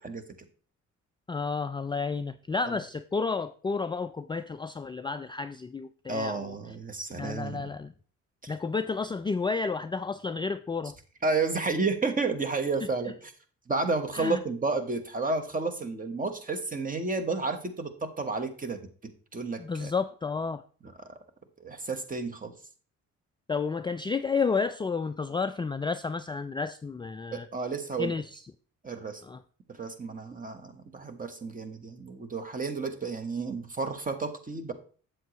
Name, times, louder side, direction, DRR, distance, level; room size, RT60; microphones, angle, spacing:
voice 1, 1.3-6.6 7.2-7.9 8.5-11.0 14.1-14.4 19.6-20.6 23.5-27.5 28.0-28.4 29.2-29.4, left 4 dB, 15° left, 9 dB, 0.3 m, -31 dB
voice 2, 6.1-7.7 8.4-8.5 11.2-13.1 13.7-19.9 21.6-22.5 27.3-28.1 28.8-29.2 29.8-34.7, right 3 dB, 25° right, 7 dB, 1.3 m, -31 dB
7.9 x 7.7 x 3.1 m, 0.41 s
cardioid pair, 90°, 30 cm